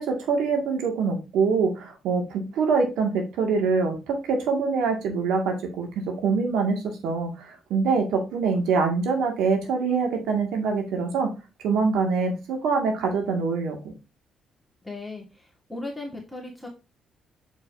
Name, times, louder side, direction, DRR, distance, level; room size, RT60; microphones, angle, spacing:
voice 1, 0.0-5.9 6.2-11.3 11.6-13.8, right 4 dB, 85° right, 3 dB, 2.0 m, -24 dB
voice 2, 14.8-16.7, left 2 dB, 5° left, -1 dB, 1.7 m, -37 dB
6.8 x 5.5 x 2.6 m, 0.28 s
cardioid pair, 90°, 0 cm